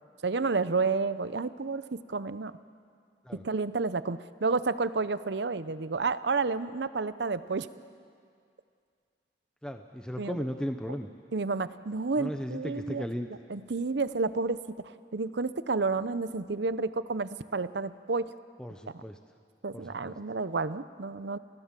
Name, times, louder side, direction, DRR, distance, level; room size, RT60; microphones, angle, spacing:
voice 1, 0.2-2.5 3.3-7.7 10.2-10.4 11.3-13.0 13.5-14.6 15.1-18.3 18.9-19.0 19.6-21.4, right 4 dB, 70° right, 14 dB, 0.7 m, -30 dB
voice 2, 9.6-11.1 12.2-13.3 18.6-19.2 19.7-20.1, equal, 5° left, 5 dB, 0.7 m, -36 dB
29.5 x 16.0 x 7.5 m, 2.2 s
head